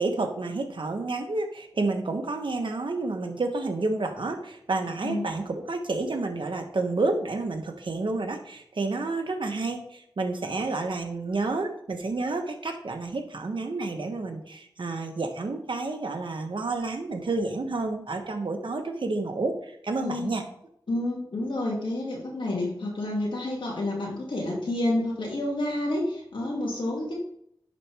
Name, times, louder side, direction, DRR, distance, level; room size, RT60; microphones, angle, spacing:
voice 1, 0.0-20.4, right 3 dB, 75° right, 4 dB, 1.2 m, -30 dB
voice 2, 20.0-20.3 20.9-27.1, left 1 dB, 85° left, -2 dB, 2.5 m, -29 dB
11.0 x 4.2 x 3.5 m, 0.69 s
wide cardioid pair, 50°, 8 cm